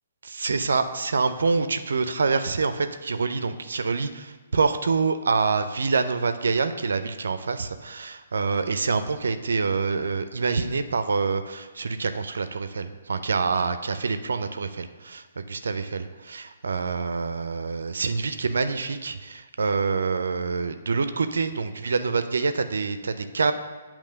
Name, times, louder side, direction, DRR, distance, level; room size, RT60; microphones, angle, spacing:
voice 1, 0.2-23.5, right 4 dB, 70° right, 10 dB, 0.4 m, -26 dB
8.4 x 3.0 x 6.3 m, 1.3 s
figure-of-eight pair, 130°, 0 cm